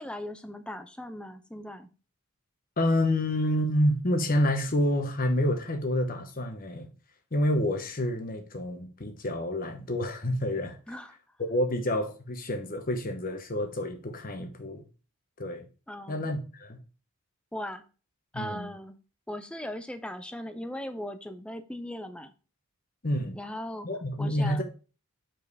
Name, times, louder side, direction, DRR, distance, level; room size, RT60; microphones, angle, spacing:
voice 1, 0.0-1.9 10.9-11.2 15.9-16.3 17.5-17.8 18.3-19.0 19.3-22.3 23.3-23.9 24.2-24.6, left 1 dB, 5° left, 0.4 m, -38 dB
voice 2, 2.8-6.9 7.3-10.8 11.4-14.8 15.4-15.6 16.1-16.8 18.3-18.7 23.0-23.4 23.8-24.6, left 1 dB, 40° left, 1.0 m, -28 dB
5.4 x 4.5 x 4.7 m
head